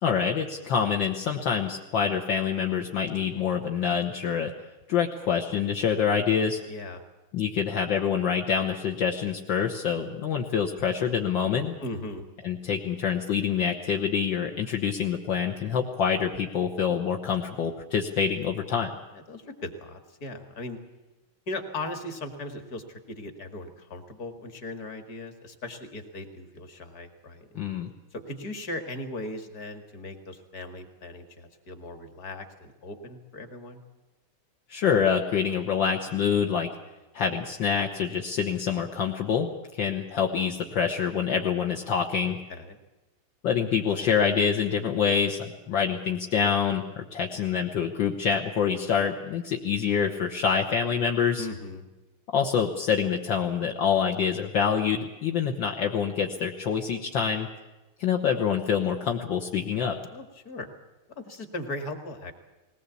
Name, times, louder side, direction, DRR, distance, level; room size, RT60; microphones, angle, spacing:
voice 1, 0.0-4.5 4.9-6.6 7.3-11.8 12.4-18.9 27.6-27.9 34.7-36.7 37.1-42.4 43.4-51.5 52.3-57.5 58.0-60.0, left 7 dB, 65° left, 1 dB, 1.9 m, -26 dB
voice 2, 6.7-7.0 11.8-12.3 19.1-20.8 21.5-27.6 28.1-33.8 42.2-42.8 51.4-51.8 60.1-60.7 61.2-62.3, left 2 dB, 45° left, 7 dB, 2.5 m, -38 dB
20.0 x 19.0 x 8.4 m, 1.1 s
omnidirectional pair, 2.3 m